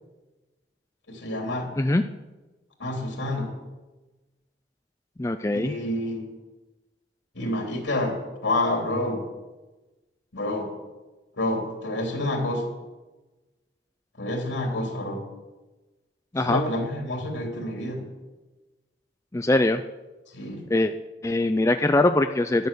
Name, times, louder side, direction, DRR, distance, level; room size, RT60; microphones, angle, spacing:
voice 1, 1.1-1.7 2.8-3.5 5.5-6.3 7.3-9.3 10.3-10.7 11.4-12.7 14.2-15.2 16.4-18.0 20.3-20.7, left 1 dB, 90° left, 1 dB, 3.1 m, -28 dB
voice 2, 5.2-5.7 16.3-16.6 19.3-19.8 20.7-20.9 21.2-22.7, left 2 dB, 15° left, 8 dB, 0.4 m, -22 dB
11.5 x 10.5 x 6.9 m, 1.1 s
head